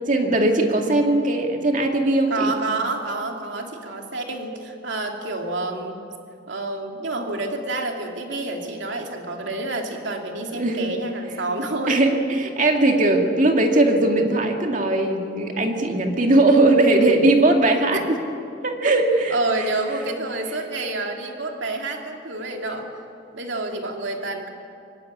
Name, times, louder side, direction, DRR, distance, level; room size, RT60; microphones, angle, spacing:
voice 1, 0.0-2.5 10.6-10.9 11.9-18.0 18.6-19.7, right 2 dB, 45° right, 3 dB, 2.2 m, -19 dB
voice 2, 2.3-6.0 6.5-12.0 17.9-18.0 18.8-18.9 19.3-22.9 23.3-24.5, right 2 dB, 80° right, 2 dB, 2.8 m, -28 dB
24.0 x 16.5 x 9.8 m, 2.5 s
head